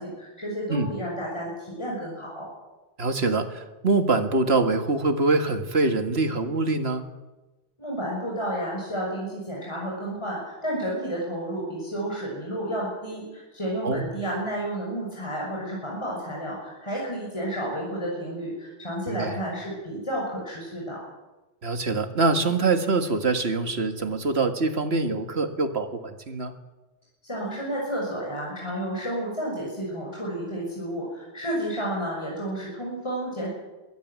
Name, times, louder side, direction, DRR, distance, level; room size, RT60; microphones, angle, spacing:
voice 1, 0.0-2.5 7.8-21.0 27.2-33.5, right 1 dB, 25° left, -3 dB, 6.5 m, -31 dB
voice 2, 3.0-7.0 13.8-14.1 19.1-19.4 21.6-26.5, right 3 dB, 65° right, 8 dB, 2.1 m, -24 dB
22.0 x 16.5 x 9.5 m, 1.1 s
omnidirectional pair, 1.2 m